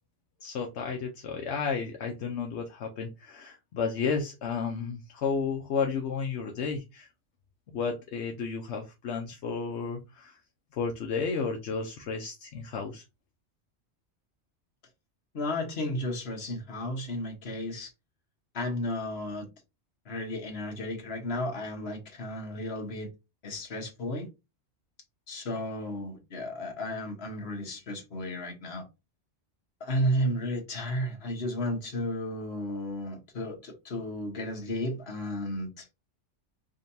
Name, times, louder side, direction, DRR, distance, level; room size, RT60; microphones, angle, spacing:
voice 1, 0.4-7.1 7.7-10.4 10.7-13.0, left 5 dB, 80° left, 1.0 m, -32 dB
voice 2, 15.3-17.9 18.5-19.5 20.1-23.1 23.4-24.3 25.3-28.8 29.8-35.9, left 1 dB, 65° left, 1.4 m, -33 dB
5.0 x 2.8 x 2.6 m
omnidirectional pair, 1.1 m